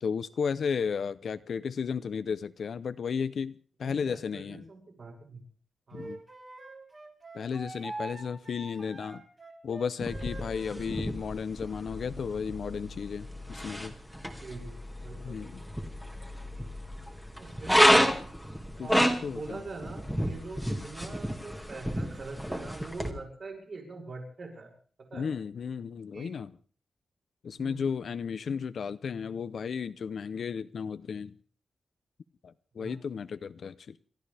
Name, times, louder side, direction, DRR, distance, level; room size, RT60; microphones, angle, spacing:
voice 1, 0.0-4.6 5.9-6.2 7.3-9.2 9.6-13.9 15.2-15.6 18.8-19.6 25.1-26.5 27.4-31.4 32.4-34.0, left 6 dB, 65° left, 0.7 m, -34 dB
voice 2, 3.8-5.4 5.9-6.1 14.2-14.7 15.0-15.5 17.4-18.1 18.8-24.7 25.1-25.3 26.1-26.3 27.6-28.1 32.8-33.0, right 3 dB, 50° right, 7.0 m, -43 dB
Wind instrument woodwind instrument, 5.9-11.0, right 2 dB, 30° right, 3.3 m, -43 dB
sound 1, 10.0-23.1, equal, 5° right, 1.9 m, -30 dB
28.5 x 14.0 x 3.5 m
wide cardioid pair, 145°, 0 cm